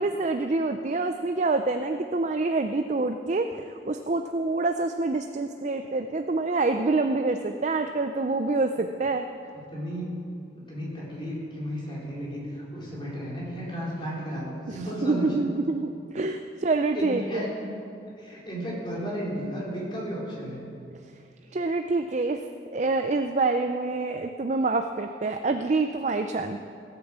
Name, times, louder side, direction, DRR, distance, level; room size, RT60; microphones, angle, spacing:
voice 1, 0.0-9.3 14.7-17.5 21.5-22.4 22.7-26.6, right 3 dB, 40° right, 7 dB, 0.5 m, -26 dB
voice 2, 9.7-10.1 10.5-15.5 16.9-17.5 18.2-20.7, equal, 30° left, -5 dB, 3.8 m, -34 dB
17.0 x 8.2 x 7.4 m, 2.5 s
head